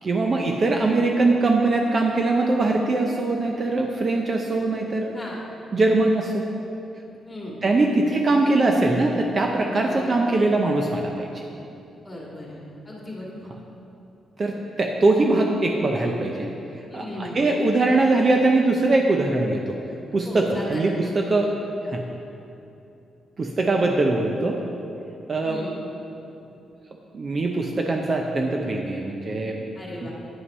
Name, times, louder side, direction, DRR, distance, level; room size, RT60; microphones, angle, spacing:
voice 1, 0.0-5.2 5.7-6.5 7.6-11.4 14.4-16.5 16.9-19.8 20.1-21.5 21.9-22.0 23.4-24.6 25.3-25.7 27.1-29.7 30.0-30.1, right 2 dB, 35° right, 2 dB, 0.6 m, -22 dB
voice 2, 9.7-10.1 12.0-12.6 12.9-13.5 16.9-17.5 20.3-20.9 25.4-25.7 29.8-30.1, left 1 dB, 15° left, -4 dB, 2.0 m, -36 dB
9.7 x 5.6 x 5.4 m, 2.8 s
cardioid pair, 130°, 0 cm